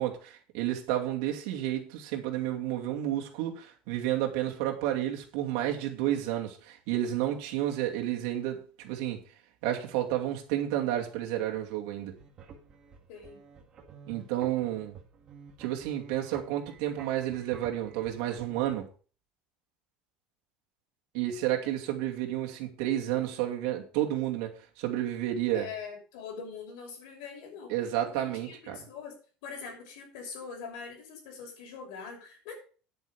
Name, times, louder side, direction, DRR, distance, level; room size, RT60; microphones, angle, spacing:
voice 1, 0.0-9.2 9.6-12.1 14.1-15.0 15.6-18.9 21.1-25.7 27.7-28.8, right 12 dB, 75° right, 2.6 m, -31 dB
sound 1, 12.0-18.7, right 5 dB, 30° right, 2.0 m, -51 dB
voice 2, 13.1-13.4 25.5-27.7 28.0-29.2 29.4-32.5, left 6 dB, 85° left, 6.1 m, -43 dB
10.0 x 8.2 x 5.1 m
cardioid pair, 180°, 3 cm